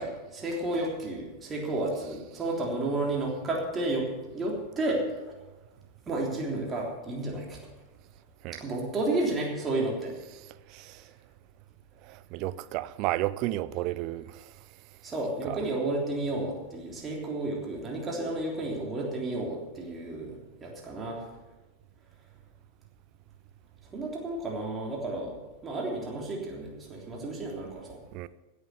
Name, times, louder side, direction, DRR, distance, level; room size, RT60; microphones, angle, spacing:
voice 1, 0.0-5.3 6.1-7.6 8.5-10.1 15.0-21.2 23.9-25.4 25.6-28.0, right 2 dB, 20° right, 3.4 m, -32 dB
voice 2, 12.1-14.3 15.4-15.7 28.1-28.3, right 16 dB, 40° right, 0.5 m, -32 dB
16.5 x 8.0 x 6.8 m
figure-of-eight pair, 90°, 0 cm